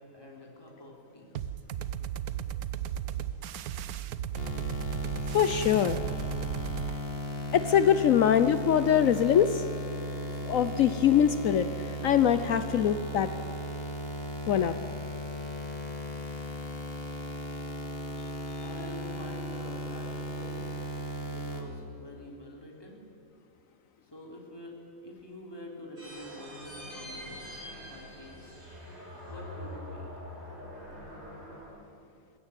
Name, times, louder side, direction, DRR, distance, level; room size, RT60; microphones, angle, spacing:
voice 1, 0.0-1.4 18.6-20.7 21.3-23.0 24.0-24.8 25.0-28.6 29.3-30.2, left 1 dB, 15° left, -1 dB, 3.5 m, -46 dB
sound 1, 1.3-7.0, right 10 dB, 85° right, 1.2 m, -35 dB
sound 2, 4.4-21.6, left 1 dB, 40° left, 2.4 m, -36 dB
voice 2, 5.3-6.0 7.5-9.7 10.4-11.7 12.0-13.3 14.5-14.7, left 9 dB, 65° left, 11 dB, 1.1 m, -23 dB
sound 3, 26.0-31.7, equal, 65° right, 8.2 m, -44 dB
20.5 x 16.0 x 9.0 m, 2.5 s
omnidirectional pair, 1.6 m